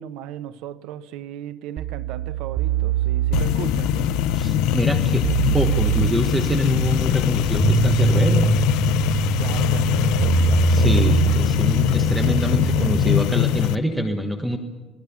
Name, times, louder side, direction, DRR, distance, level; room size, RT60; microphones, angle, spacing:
voice 1, 0.0-4.1 9.4-10.8, right 11 dB, 80° right, 1.2 m, -36 dB
sound 1, 1.8-13.2, right 7 dB, 25° right, 0.9 m, -23 dB
sound 2, 3.3-13.8, left 13 dB, 80° left, 0.7 m, -22 dB
voice 2, 4.3-5.3 5.5-8.5 10.7-14.6, equal, 5° right, 1.5 m, -25 dB
sound 3, 5.3-12.8, left 7 dB, 50° left, 5.0 m, -41 dB
27.5 x 19.0 x 8.7 m
cardioid pair, 160°, 0 cm